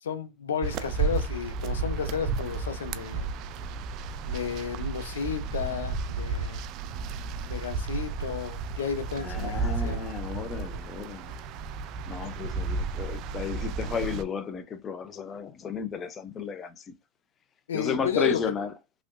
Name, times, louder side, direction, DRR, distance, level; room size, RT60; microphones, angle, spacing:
voice 1, 0.0-3.3 4.3-6.6 7.5-10.0 17.7-18.4, left 7 dB, 85° left, 0.6 m, -32 dB
sound 1, 0.6-14.2, right 4 dB, 45° right, 0.4 m, -33 dB
voice 2, 9.2-11.3 12.1-16.9 17.7-18.7, left 6 dB, 30° left, 0.5 m, -33 dB
3.0 x 2.9 x 2.5 m
hypercardioid pair, 110°, 0 cm